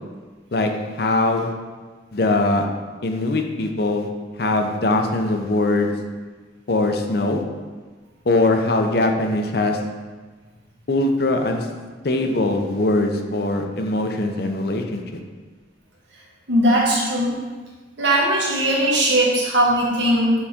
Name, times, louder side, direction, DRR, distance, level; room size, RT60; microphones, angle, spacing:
voice 1, 1.0-1.5 2.1-2.6 3.0-4.1 4.4-5.9 6.7-7.4 8.3-9.8 10.9-11.7 12.0-15.0, left 2 dB, 55° left, 4 dB, 0.6 m, -21 dB
voice 2, 16.5-17.3 18.0-20.3, right 1 dB, 70° right, -4 dB, 1.6 m, -19 dB
7.1 x 4.1 x 3.6 m, 1.4 s
head